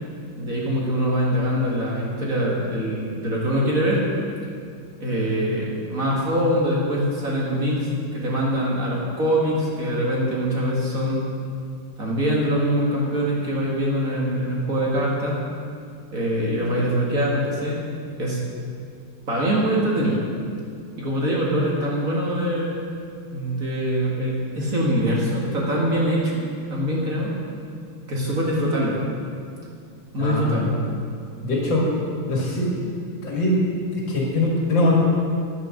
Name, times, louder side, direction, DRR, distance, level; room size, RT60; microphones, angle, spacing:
voice 1, 0.4-4.0 5.0-11.2 12.0-15.4 16.1-17.8 18.2-18.4 19.3-20.2 21.0-22.8 23.3-26.4 26.7-27.4 28.1-29.0 30.1-30.7, equal, 40° right, -4 dB, 2.1 m, -23 dB
voice 2, 30.2-30.6 31.4-31.9 32.3-32.7 33.2-33.6 34.1-35.0, left 1 dB, 60° left, -2 dB, 2.7 m, -22 dB
11.0 x 8.9 x 6.4 m, 2.3 s
omnidirectional pair, 2.3 m